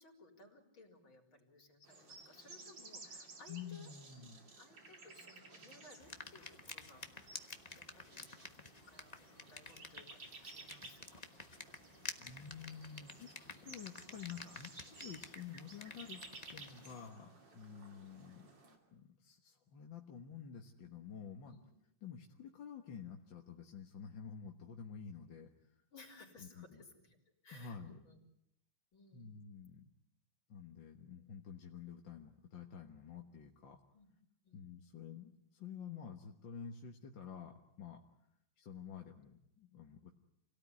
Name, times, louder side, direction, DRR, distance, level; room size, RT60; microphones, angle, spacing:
voice 1, 0.0-3.9 4.1-4.3 4.6-7.5 7.8-8.3 8.9-11.2 14.1-14.3 17.5-17.7 21.5-21.6 25.9-27.2 27.4-28.2 28.9-29.3 33.9-34.1 34.4-34.6, left 2 dB, 85° left, 2 dB, 4.8 m, -60 dB
sound 1, 1.8-18.8, right 3 dB, 65° right, 3.7 m, -56 dB
voice 2, 3.5-4.4 12.2-13.3 13.6-16.2 16.5-18.5 18.9-21.6 22.0-25.8 26.4-26.8 27.5-28.0 29.1-29.9 30.5-33.8 34.5-38.0 38.6-40.1, left 7 dB, 70° left, 2 dB, 2.2 m, -50 dB
sound 2, 6.0-17.1, left 3 dB, 25° left, 1.2 m, -51 dB
28.5 x 18.0 x 9.6 m, 0.80 s
omnidirectional pair, 2.1 m